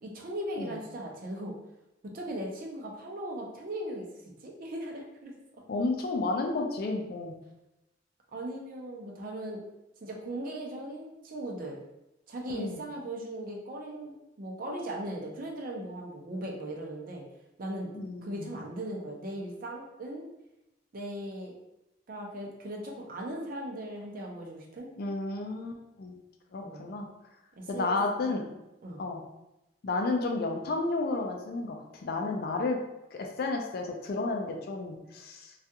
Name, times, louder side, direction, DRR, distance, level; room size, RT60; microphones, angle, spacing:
voice 1, 0.0-1.5 2.1-4.1 4.4-5.3 8.3-9.6 10.0-11.8 12.3-17.2 17.6-17.9 18.2-20.3 20.9-21.5 22.1-24.9 26.6-26.9 27.6-28.5 28.8-29.0, right 1 dB, 50° right, 0 dB, 0.5 m, -38 dB
voice 2, 5.7-7.3 12.5-12.8 17.9-18.5 25.0-26.2 26.5-27.1 27.7-28.4 29.0-29.2 29.8-32.8 33.1-35.5, left 3 dB, 55° left, 2 dB, 0.4 m, -32 dB
2.3 x 2.2 x 2.7 m, 0.93 s
head